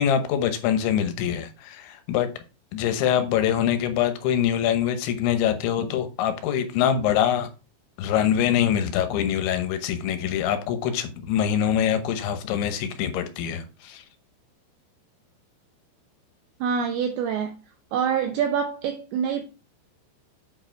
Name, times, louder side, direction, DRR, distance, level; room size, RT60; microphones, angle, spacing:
voice 1, 0.0-2.3 2.7-7.5 8.0-14.0, left 9 dB, 80° left, 3.3 m, -24 dB
voice 2, 16.6-17.6 17.9-19.5, right 7 dB, 85° right, 2.2 m, -25 dB
8.3 x 4.8 x 4.5 m
omnidirectional pair, 5.3 m